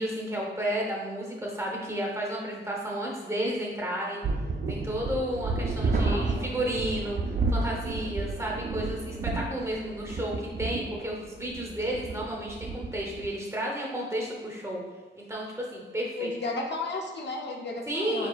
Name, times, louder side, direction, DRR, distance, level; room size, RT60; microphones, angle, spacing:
voice 1, 0.0-4.2 4.7-7.2 7.5-14.8 15.2-16.3 17.9-18.3, equal, 15° right, -2 dB, 0.7 m, -32 dB
sound 1, 4.2-13.3, right 3 dB, 50° right, 0.4 m, -31 dB
voice 2, 16.2-18.3, left 3 dB, 60° left, 0 dB, 0.5 m, -33 dB
4.9 x 3.9 x 2.3 m, 1.2 s
wide cardioid pair, 180°, 20 cm